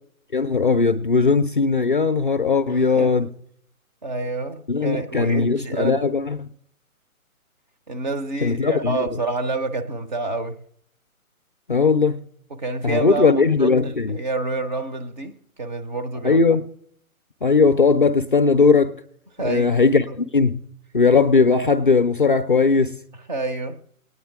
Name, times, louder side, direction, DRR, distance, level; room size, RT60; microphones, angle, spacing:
voice 1, 0.3-3.3 4.7-6.5 8.4-9.1 11.7-12.2 12.8-14.2 16.2-16.6 17.4-19.0 19.4-20.6 20.9-22.9, left 4 dB, 40° left, 0.4 m, -18 dB
voice 2, 2.7-3.1 4.0-6.0 7.9-10.6 12.5-15.3 15.6-16.4 19.4-19.7 20.1-20.2 23.3-23.8, right 3 dB, 35° right, 0.6 m, -28 dB
19.0 x 9.5 x 3.4 m
figure-of-eight pair, 145°, 43 cm